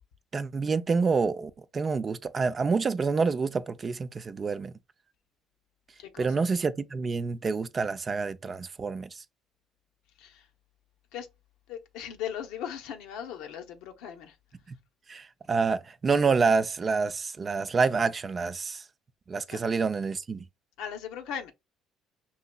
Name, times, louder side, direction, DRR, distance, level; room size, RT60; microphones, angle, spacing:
voice 1, 0.3-4.7 6.2-9.1 14.7-14.8 15.1-18.8 19.3-20.4, right 4 dB, 35° right, 0.5 m, -27 dB
voice 2, 11.7-14.3 19.5-19.6 20.8-21.5, left 9 dB, 75° left, 0.8 m, -38 dB
5.5 x 2.8 x 2.3 m
hypercardioid pair, 60°, 0 cm